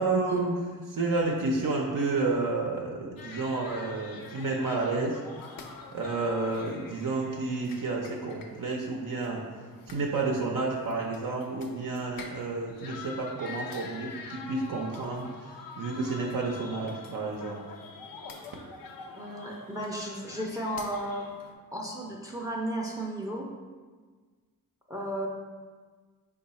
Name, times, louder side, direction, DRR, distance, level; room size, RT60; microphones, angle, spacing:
voice 1, 0.0-5.2 5.9-9.4 9.9-17.6, right 3 dB, 60° right, -1 dB, 0.6 m, -30 dB
sound 1, 3.2-21.5, left 4 dB, 70° left, 0.5 m, -46 dB
voice 2, 19.1-21.3 21.7-23.5 24.9-25.3, right 1 dB, 10° right, -2 dB, 0.5 m, -34 dB
4.6 x 2.4 x 4.0 m, 1.5 s
cardioid pair, 70°, 36 cm